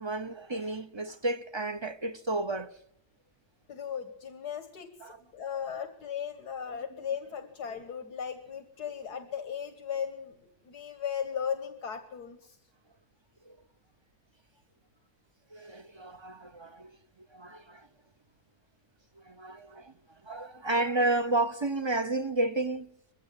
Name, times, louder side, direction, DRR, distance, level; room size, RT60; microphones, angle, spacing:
voice 1, 0.0-2.8 5.0-5.2 13.5-13.6 15.5-17.0 17.3-17.9 19.2-22.9, right 2 dB, 25° right, 0.6 m, -32 dB
voice 2, 3.7-12.6, left 8 dB, 75° left, 2.0 m, -37 dB
21.5 x 16.5 x 9.9 m
omnidirectional pair, 1.7 m